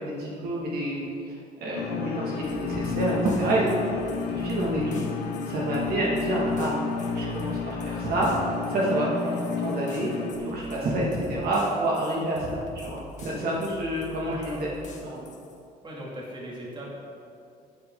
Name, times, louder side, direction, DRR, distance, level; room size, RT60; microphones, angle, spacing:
voice 1, 0.0-3.8 4.3-5.1 5.4-8.3 8.7-14.7 15.0-15.3, right 1 dB, 65° right, -4 dB, 2.5 m, -28 dB
sound 1, 1.8-10.3, left 5 dB, 75° left, 1.4 m, -31 dB
sound 2, 2.4-15.6, left 4 dB, 45° left, 1.7 m, -47 dB
voice 2, 14.2-14.7 15.8-16.9, right 1 dB, 30° right, -4 dB, 2.9 m, -38 dB
13.5 x 8.8 x 4.1 m, 2.4 s
cardioid pair, 110°, 17 cm